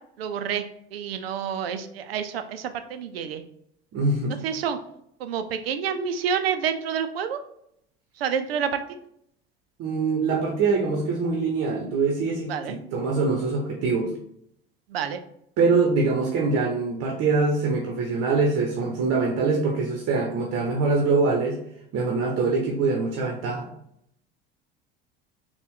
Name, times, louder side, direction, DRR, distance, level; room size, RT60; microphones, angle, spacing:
voice 1, 0.2-0.6 0.9-3.4 4.4-4.8 5.2-7.4 8.2-8.7 12.5-12.7 14.9-15.2, right 7 dB, 85° right, 9 dB, 0.5 m, -28 dB
voice 2, 3.9-4.4 9.8-14.1 15.6-21.6 21.9-23.7, right 4 dB, 50° right, 0 dB, 0.9 m, -24 dB
4.2 x 2.3 x 3.6 m, 0.72 s
hypercardioid pair, 75°, 29 cm